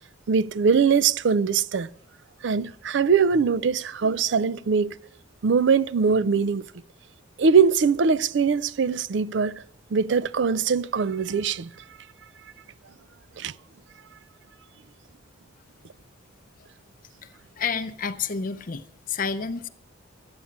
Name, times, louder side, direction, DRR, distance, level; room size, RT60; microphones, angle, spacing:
voice 1, 0.3-1.9 2.4-4.9 5.4-6.7 7.4-9.6 9.9-11.7 13.4-13.5, right 5 dB, 60° right, 0.4 m, -22 dB
voice 2, 17.2-19.7, left 5 dB, 45° left, 0.6 m, -30 dB
13.0 x 8.6 x 7.2 m
head